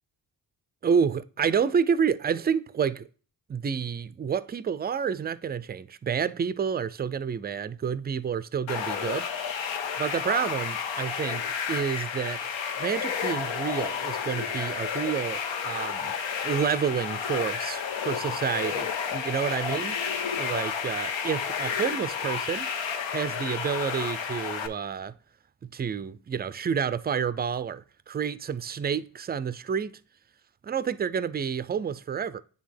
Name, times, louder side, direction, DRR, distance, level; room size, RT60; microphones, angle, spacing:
voice 1, 0.8-3.1 3.5-9.3 10.0-12.4 12.8-16.1 16.4-20.0 20.4-22.7 23.1-25.1 25.6-29.9 30.6-32.4, right 7 dB, 25° right, 0.3 m, -29 dB
sound 1, 8.7-24.7, left 7 dB, 85° left, 0.7 m, -31 dB
9.3 x 3.6 x 3.3 m
cardioid pair, 50°, 45 cm